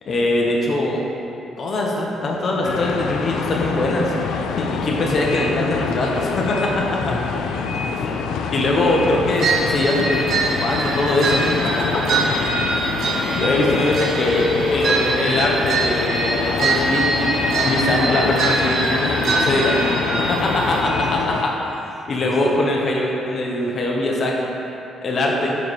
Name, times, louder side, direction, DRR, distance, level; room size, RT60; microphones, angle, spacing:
voice 1, 0.1-1.1 1.6-4.1 4.6-7.0 8.0-8.1 8.5-11.5 13.3-21.2 22.1-24.5 25.0-25.5, left 1 dB, 50° left, -1 dB, 0.9 m, -22 dB
sound 1, 2.6-21.5, left 5 dB, 85° left, 0.4 m, -25 dB
voice 2, 7.0-7.3 7.7-8.4 12.3-13.0 20.7-21.6 21.9-22.8, left 2 dB, 20° left, -3 dB, 0.8 m, -36 dB
sound 2, 9.4-20.8, right 3 dB, 60° right, 0.7 m, -23 dB
5.6 x 4.8 x 4.8 m, 2.8 s
cardioid pair, 90°, 0 cm